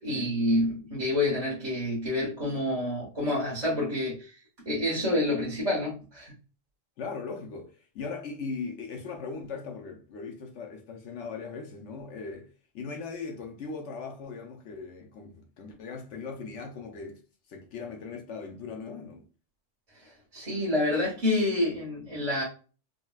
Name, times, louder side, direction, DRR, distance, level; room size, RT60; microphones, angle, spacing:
voice 1, 0.0-4.4 4.6-6.3 20.0-22.4, left 1 dB, 30° right, 1.0 m, -28 dB
voice 2, 7.0-17.2 17.5-19.2, left 4 dB, 70° left, 0.9 m, -39 dB
3.8 x 2.2 x 2.2 m
omnidirectional pair, 1.3 m